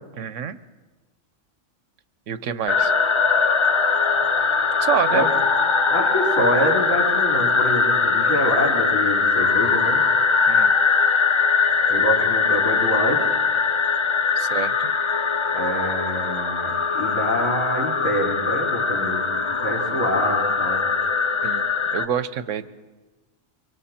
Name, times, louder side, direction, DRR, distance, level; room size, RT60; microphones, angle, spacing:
voice 1, 0.2-0.6 2.3-2.9 4.8-5.3 10.5-10.7 14.4-14.9 21.4-22.7, right 8 dB, 85° right, 13 dB, 1.2 m, -27 dB
sound 1, 2.7-22.1, left 4 dB, 30° left, 0.6 m, -21 dB
voice 2, 5.9-10.0 11.9-13.2 15.5-19.2 19.6-20.8, equal, 85° left, -3 dB, 4.5 m, -25 dB
26.0 x 24.0 x 4.4 m, 1.2 s
omnidirectional pair, 1.2 m